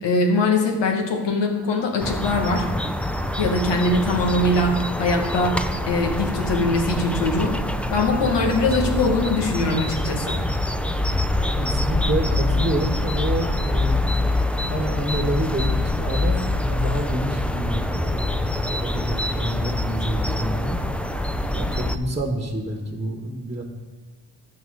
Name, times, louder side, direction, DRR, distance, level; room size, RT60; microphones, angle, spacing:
voice 1, 0.0-2.7 3.4-5.6 5.9-7.6 7.9-10.4, left 2 dB, 65° left, 2 dB, 2.3 m, -22 dB
sound 1, 2.0-22.0, left 1 dB, 5° left, 0.7 m, -25 dB
voice 2, 11.6-14.0 14.7-20.8 21.5-23.6, right 1 dB, 15° right, 2 dB, 1.8 m, -28 dB
12.5 x 7.8 x 4.1 m, 1.3 s
supercardioid pair, 55°, 46 cm